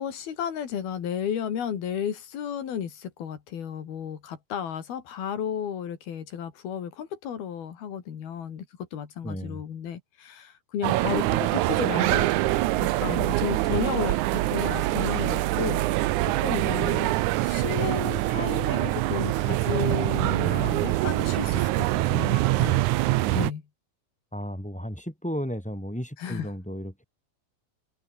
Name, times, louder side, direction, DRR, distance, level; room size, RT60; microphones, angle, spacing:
voice 1, 0.0-15.8 16.2-17.1 17.4-22.8 23.3-23.6 26.2-26.5, left 8 dB, 80° left, 4.6 m, -33 dB
voice 2, 9.2-9.6 24.3-27.0, equal, ahead, 5.2 m, -34 dB
sound 1, 10.8-23.5, right 17 dB, 80° right, 1.8 m, -24 dB
omnidirectional pair, 4.3 m